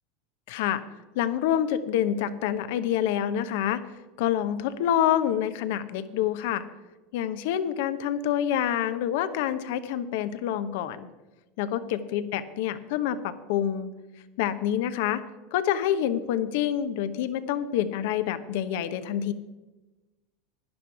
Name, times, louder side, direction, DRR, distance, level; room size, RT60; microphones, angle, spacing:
voice 1, 0.5-0.8 1.1-3.8 4.2-6.6 7.1-11.1 11.6-13.9 14.4-15.2 15.5-19.3, left 10 dB, 70° left, 12 dB, 1.0 m, -27 dB
11.5 x 10.5 x 4.8 m, 1.1 s
hypercardioid pair, 95°, 0 cm